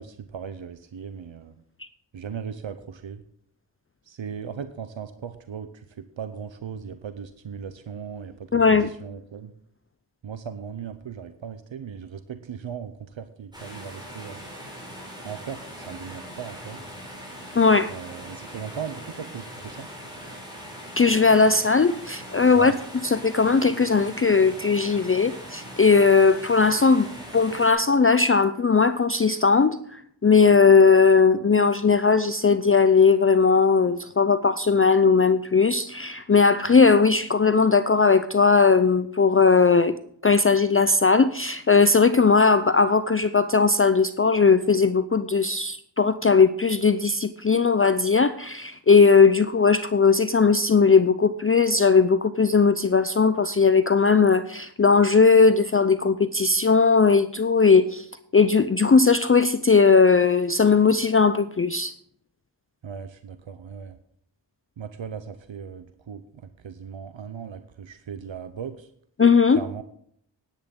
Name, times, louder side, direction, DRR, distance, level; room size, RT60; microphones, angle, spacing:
voice 1, 0.0-1.5 2.1-3.2 4.1-8.3 8.8-9.5 10.2-14.4 15.2-16.8 17.9-19.9 22.5-22.8 62.8-64.0 64.8-68.9 69.5-69.8, right 7 dB, 85° right, 11 dB, 0.8 m, -38 dB
voice 2, 8.5-8.9 17.6-17.9 21.0-22.7 23.0-27.1 27.3-39.9 40.2-58.1 58.3-61.9 69.2-69.6, left 4 dB, 30° left, 12 dB, 0.5 m, -18 dB
sound 1, 13.5-27.7, equal, 10° right, 5.2 m, -41 dB
10.0 x 10.0 x 5.3 m, 0.66 s
wide cardioid pair, 60°, 45 cm